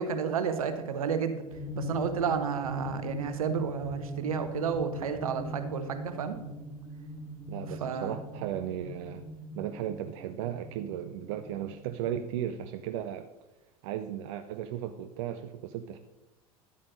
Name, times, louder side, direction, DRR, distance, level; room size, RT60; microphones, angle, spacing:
voice 1, 0.0-1.4 1.7-6.4 7.8-8.2, right 6 dB, 70° right, 9 dB, 0.9 m, -31 dB
sound 1, 1.5-12.6, left 1 dB, 15° left, 2.0 m, -41 dB
voice 2, 7.5-9.2 9.6-13.3 13.8-16.0, right 10 dB, 55° right, 8 dB, 0.5 m, -35 dB
11.0 x 8.6 x 2.6 m, 1.1 s
figure-of-eight pair, 80°, 19 cm